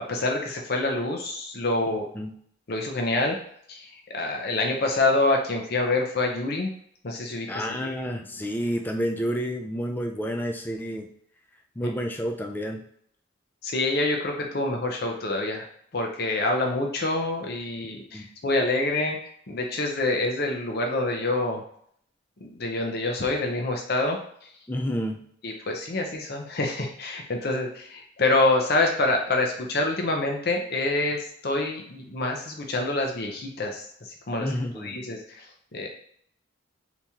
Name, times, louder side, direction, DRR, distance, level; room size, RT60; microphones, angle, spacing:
voice 1, 0.1-2.1 2.7-3.4 3.7-6.7 7.0-7.9 11.8-11.9 13.6-15.7 15.9-19.2 19.5-21.6 22.4-24.2 25.4-33.8 34.3-34.5 34.8-35.4 35.7-35.9, left 2 dB, 50° left, 2 dB, 0.6 m, -26 dB
voice 2, 7.5-11.1 11.8-12.8 18.1-18.3 24.7-25.2 34.4-35.0, equal, 10° left, 3 dB, 0.3 m, -29 dB
3.5 x 2.9 x 2.8 m, 0.65 s
head